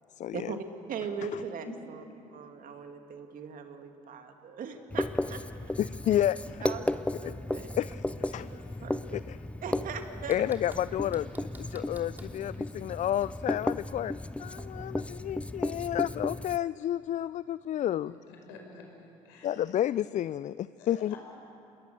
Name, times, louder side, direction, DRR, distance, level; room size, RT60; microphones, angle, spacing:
voice 1, 0.2-0.5 5.8-6.6 7.2-7.3 7.8-8.8 9.1-9.4 10.3-14.1 14.4-18.2 19.4-21.2, left 11 dB, 45° left, 17 dB, 0.4 m, -31 dB
voice 2, 0.9-2.0 2.3-5.4 6.6-6.9 7.2-7.7 8.5-9.0 9.6-10.3, right 6 dB, 55° right, 6 dB, 2.3 m, -39 dB
Writing, 4.9-16.6, left 1 dB, 5° left, 0.7 m, -35 dB
Knock, 6.0-8.1 10.3-12.4 14.6-15.1, right 1 dB, 10° right, 3.2 m, -52 dB
voice 3, 18.1-19.6 20.8-21.2, left 4 dB, 75° left, 1 dB, 5.2 m, -51 dB
27.5 x 21.0 x 6.7 m, 2.9 s
hypercardioid pair, 55°, 17 cm